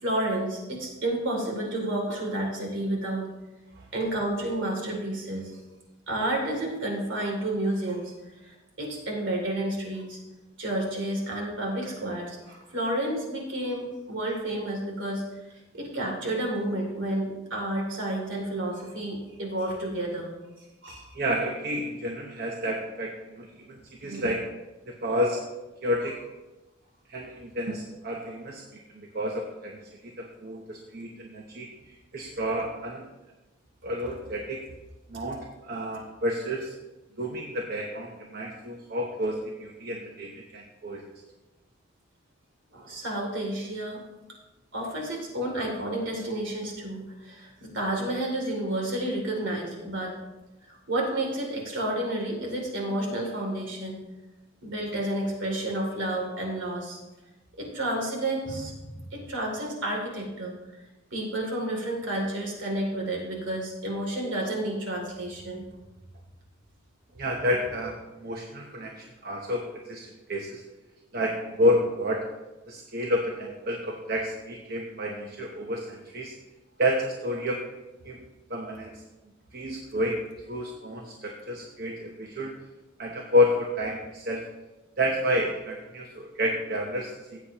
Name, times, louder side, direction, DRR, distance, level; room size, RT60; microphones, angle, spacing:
voice 1, 0.0-3.3 3.9-5.6 6.1-8.1 8.4-10.2 10.6-15.2 15.5-20.3 20.8-21.1 42.7-44.0 44.7-50.2 50.7-54.0 54.6-57.0 57.6-60.5 61.1-65.6, right 1 dB, 70° right, 0 dB, 2.8 m, -30 dB
voice 2, 21.1-24.5 24.9-25.4 25.8-26.2 27.1-33.1 33.8-34.7 35.1-36.7 37.2-41.0 67.2-70.6 71.1-72.3 72.7-76.3 76.8-77.6 78.0-78.2 78.5-79.0 79.5-80.2 80.5-82.5 83.0-84.4 85.0-87.4, equal, 50° right, 1 dB, 0.9 m, -30 dB
15.5 x 8.2 x 3.0 m, 1.1 s
head